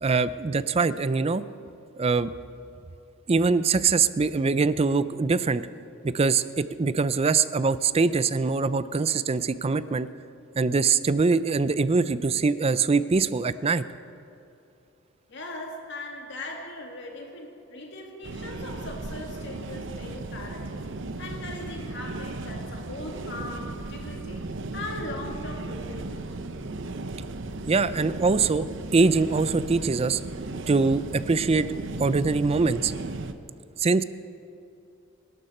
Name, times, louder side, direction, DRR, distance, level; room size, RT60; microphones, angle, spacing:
voice 1, 0.0-1.4 2.0-2.3 3.3-5.7 6.0-10.1 10.6-13.8 27.7-28.7 28.9-30.2 30.7-31.7 32.0-32.9 33.8-34.0, right 4 dB, 30° right, 15 dB, 0.4 m, -23 dB
voice 2, 15.3-20.8 21.2-26.2, left 2 dB, 60° left, 1 dB, 2.2 m, -39 dB
sound 1, 18.2-33.3, right 2 dB, 65° right, 0.8 m, -36 dB
25.0 x 12.0 x 4.3 m, 2.7 s
head